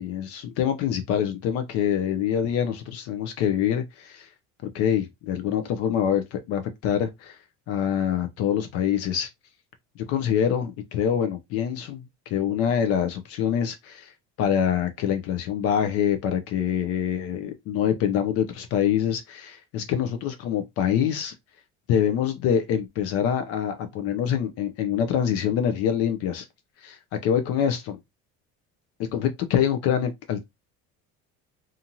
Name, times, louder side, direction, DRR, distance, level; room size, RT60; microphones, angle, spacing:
voice 1, 0.0-4.3 4.7-7.4 7.7-9.3 10.1-14.1 14.4-21.3 21.9-26.5 26.8-28.0 29.1-30.4, left 9 dB, 55° left, 0.4 m, -25 dB
2.6 x 2.5 x 2.8 m
cardioid pair, 170°, 29 cm